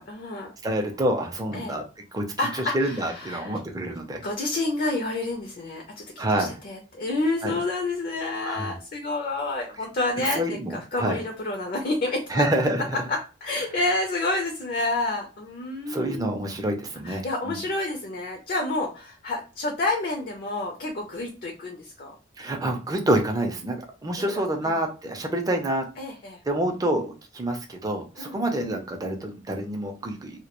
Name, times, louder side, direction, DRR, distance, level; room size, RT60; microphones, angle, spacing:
voice 1, 0.0-0.5 1.5-1.7 2.4-3.6 4.2-12.4 13.1-16.3 17.0-22.2 24.2-24.7 26.0-26.4 28.2-28.4, left 2 dB, 45° left, 2 dB, 0.4 m, -29 dB
voice 2, 0.6-1.9 2.1-2.2 2.5-4.2 6.2-6.6 7.4-7.6 8.4-8.7 10.3-11.2 12.3-13.0 15.9-17.6 22.4-25.9 26.4-30.4, right 1 dB, 20° right, 3 dB, 0.4 m, -27 dB
2.2 x 2.1 x 2.9 m, 0.33 s
head